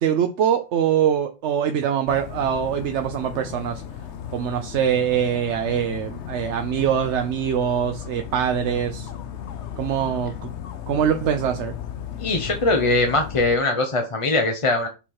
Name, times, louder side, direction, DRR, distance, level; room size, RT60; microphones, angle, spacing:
voice 1, 0.0-3.8 4.3-9.1 9.8-10.5 10.9-11.7, right 8 dB, 85° right, 7 dB, 1.0 m, -23 dB
Dog, 2.1-13.6, left 9 dB, 85° left, 1.1 m, -35 dB
voice 2, 12.2-14.9, left 2 dB, 30° left, 5 dB, 0.8 m, -21 dB
7.2 x 4.3 x 4.7 m, 0.30 s
omnidirectional pair, 1.1 m